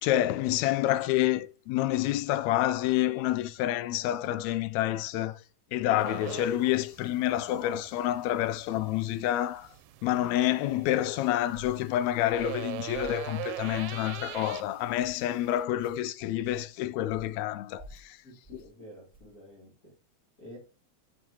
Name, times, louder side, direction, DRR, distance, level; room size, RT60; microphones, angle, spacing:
voice 1, 0.0-5.4 5.7-9.7 10.0-18.2 18.5-18.6, left 13 dB, 80° left, 1.8 m, -28 dB
sound 1, 6.0-15.6, right 15 dB, 85° right, 2.0 m, -43 dB
sound 2, 11.5-11.8 12.3-12.6 12.9-13.2 13.6-13.9 14.3-14.5 15.0-15.3 15.7-16.0 16.4-16.7 17.1-17.4 17.8-18.1 18.4-18.7 19.1-19.3, right 2 dB, 5° left, 1.2 m, -51 dB
voice 2, 18.2-19.9 20.4-20.6, equal, 30° left, 2.5 m, -49 dB
7.4 x 7.1 x 2.9 m
omnidirectional pair, 3.3 m